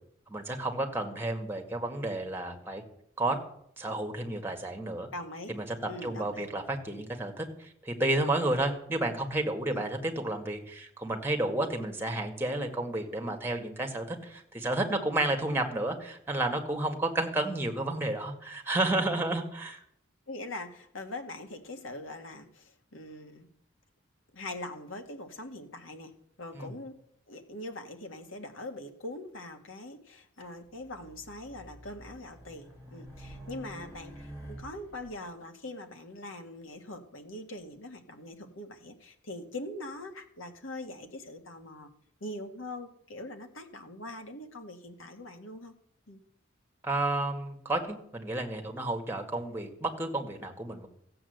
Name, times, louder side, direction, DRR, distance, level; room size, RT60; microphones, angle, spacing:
voice 1, 0.3-2.8 3.2-3.4 3.8-5.1 5.5-5.7 6.0-19.8 26.5-26.7 46.8-50.9, right 2 dB, 10° right, 3 dB, 1.9 m, -31 dB
voice 2, 5.1-5.6 5.9-6.5 9.7-9.9 20.3-23.5 24.3-26.1 26.4-27.0 27.3-41.9 42.2-45.7 46.1-46.2, left 1 dB, 75° left, 6 dB, 1.8 m, -42 dB
Race car auto racing, 30.8-35.1, right 1 dB, 10° left, 4.4 m, -48 dB
15.0 x 7.8 x 7.9 m, 0.70 s
head